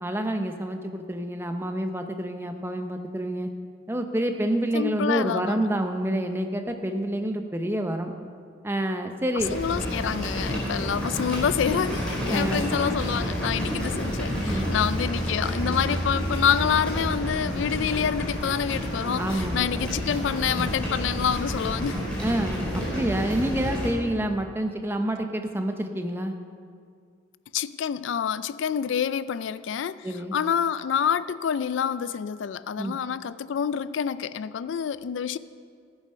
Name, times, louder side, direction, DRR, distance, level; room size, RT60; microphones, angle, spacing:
voice 1, 0.0-3.5 3.9-8.1 8.6-9.5 12.3-12.7 14.4-14.7 19.2-19.6 22.2-26.3 30.0-30.3 32.8-32.9, right 1 dB, 10° right, 5 dB, 0.7 m, -28 dB
voice 2, 4.7-5.6 9.5-22.0 27.5-35.4, left 7 dB, 75° left, 16 dB, 0.3 m, -27 dB
sound 1, 9.4-23.9, equal, 5° left, 3.9 m, -29 dB
14.5 x 9.1 x 5.5 m, 2.1 s
head